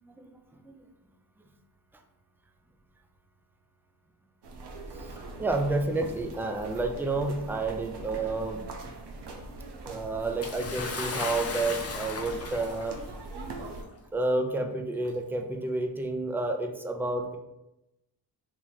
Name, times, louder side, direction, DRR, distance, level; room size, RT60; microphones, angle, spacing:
sound 1, 4.4-13.8, right 2 dB, 70° right, 0.7 m, -42 dB
voice 1, 5.4-8.6 9.9-13.0 14.1-17.4, right 2 dB, 5° right, 5 dB, 0.3 m, -30 dB
Bathtub (filling or washing) / Splash splatter, 10.4-13.0 13.9-14.0 15.0-15.1, left 4 dB, 35° left, 0.6 m, -36 dB
3.1 x 2.8 x 4.0 m, 0.92 s
cardioid pair, 80°, 41 cm